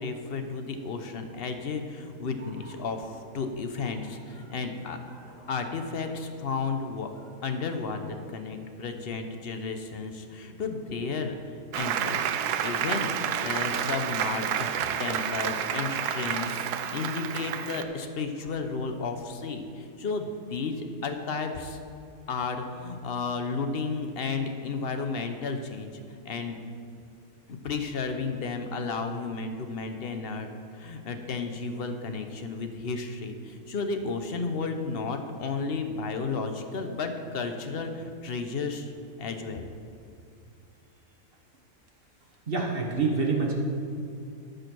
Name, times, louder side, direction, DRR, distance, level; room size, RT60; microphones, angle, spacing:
voice 1, 0.0-5.0 5.5-7.1 7.4-11.3 11.7-21.8 22.3-26.6 27.5-30.5 30.7-38.9 39.2-39.7, left 4 dB, 50° left, 6 dB, 0.8 m, -33 dB
Applause, 11.7-17.8, right 9 dB, 85° right, 1.1 m, -30 dB
voice 2, 42.5-43.5, right 4 dB, 40° right, -1 dB, 1.4 m, -26 dB
13.0 x 5.2 x 6.1 m, 2.6 s
omnidirectional pair, 1.6 m